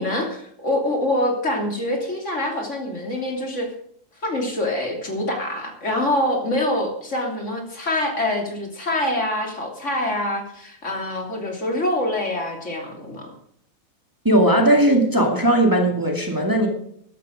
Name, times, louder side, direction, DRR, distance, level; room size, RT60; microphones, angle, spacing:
voice 1, 0.0-3.7 4.2-13.3, left 1 dB, 50° left, 2 dB, 3.2 m, -25 dB
voice 2, 14.2-16.7, right 1 dB, 15° right, 2 dB, 2.2 m, -18 dB
14.0 x 12.0 x 5.2 m, 0.68 s
omnidirectional pair, 1.6 m